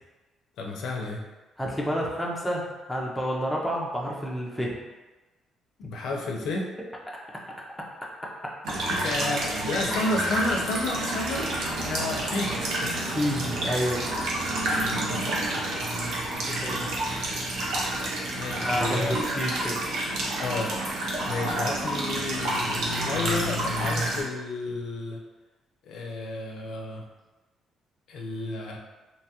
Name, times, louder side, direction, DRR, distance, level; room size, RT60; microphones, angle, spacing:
voice 1, 0.6-1.2 5.8-6.7 8.9-12.6 14.5-14.7 16.3-16.9 18.3-19.2 20.4-20.7 21.3-25.2 25.8-27.1 28.1-28.8, left 2 dB, 70° left, 0 dB, 0.4 m, -31 dB
voice 2, 1.6-4.7 13.1-14.1 16.6-16.8 18.6-19.8, equal, 5° left, -3 dB, 0.4 m, -29 dB
sound 1, 8.6-24.2, right 1 dB, 70° right, 0.6 m, -29 dB
2.8 x 2.2 x 2.8 m, 1.2 s
cardioid pair, 165°, 0 cm